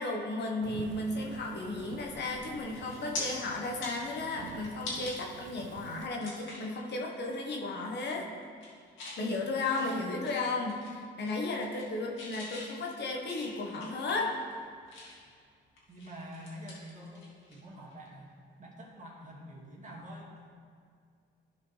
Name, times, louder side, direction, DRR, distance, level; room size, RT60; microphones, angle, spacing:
voice 1, 0.0-8.3 9.2-14.4, left 2 dB, 60° left, 0 dB, 1.3 m, -34 dB
Thunderstorm / Rain, 0.6-6.1, right 7 dB, 75° right, 0.5 m, -48 dB
sound 1, 2.7-3.2 3.7-5.1 5.6-5.7 6.2-6.7 7.1-7.3 7.6-8.1 8.4-9.2 9.6-10.9 11.2-11.9 12.2-15.3 15.8-17.6 17.9-18.1 19.9-20.1, left 2 dB, 75° left, 2.1 m, -44 dB
voice 2, 15.9-18.3 18.6-20.3, equal, 40° right, -3 dB, 2.0 m, -46 dB
12.5 x 4.9 x 3.3 m, 2.2 s
cardioid pair, 90°, 20 cm